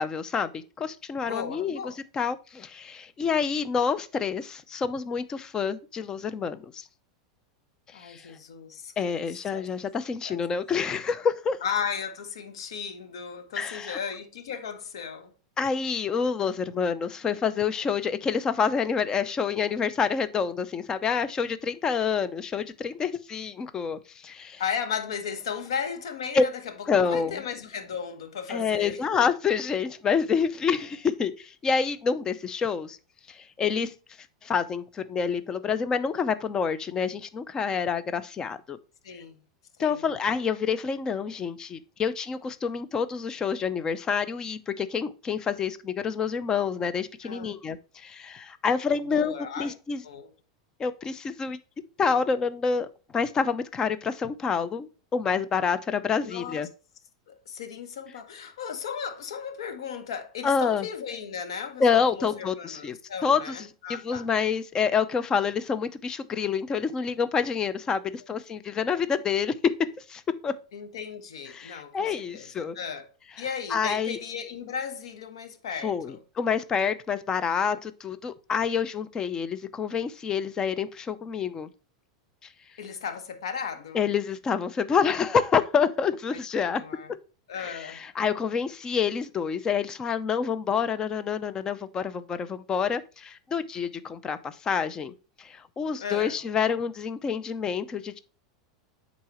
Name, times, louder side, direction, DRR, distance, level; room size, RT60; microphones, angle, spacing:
voice 1, 0.0-1.8 2.1-6.9 7.9-8.3 9.0-11.6 13.6-14.0 15.6-24.6 26.3-26.4 26.9-27.4 28.5-33.0 33.3-33.9 34.4-38.8 39.8-50.0 50.8-51.6 52.0-52.9 53.1-56.7 60.4-60.9 61.8-63.0 63.2-63.5 63.9-70.5 71.5-72.8 73.7-74.2 75.8-81.7 83.9-86.8 87.6-98.2, left 6 dB, 25° left, 0.6 m, -27 dB
voice 2, 1.2-2.0 7.9-9.6 10.2-10.4 11.6-15.3 24.6-29.0 39.0-39.4 39.8-40.0 47.2-47.6 49.1-49.7 50.0-50.3 56.2-56.7 57.3-64.3 68.0-68.1 70.7-76.2 82.8-84.0 86.3-87.1 87.5-88.1 96.0-96.4, left 7 dB, 80° left, 1.1 m, -36 dB
9.5 x 4.1 x 3.0 m
hypercardioid pair, 110°, 3 cm